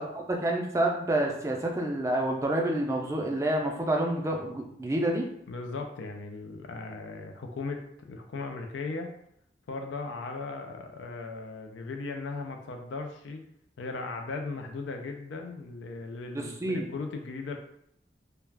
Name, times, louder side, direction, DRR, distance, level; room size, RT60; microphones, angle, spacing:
voice 1, 0.0-5.3 16.3-16.9, right 1 dB, 15° right, 1 dB, 0.3 m, -28 dB
voice 2, 5.5-9.1 9.7-13.4 13.8-17.6, left 3 dB, 90° left, 4 dB, 0.4 m, -37 dB
2.3 x 2.2 x 3.2 m, 0.72 s
head